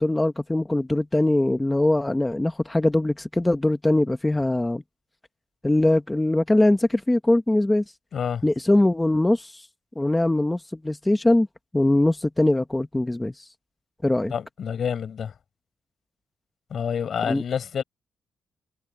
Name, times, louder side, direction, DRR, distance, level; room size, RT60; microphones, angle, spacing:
voice 1, 0.0-4.8 5.6-7.8 8.4-9.6 10.0-11.5 11.7-13.4 14.0-14.3 17.2-17.4, left 1 dB, 10° left, 1.0 m, -22 dB
voice 2, 8.1-8.4 14.3-15.3 16.7-17.8, left 7 dB, 55° left, 5.5 m, -28 dB
wide cardioid pair, 145°, 0 cm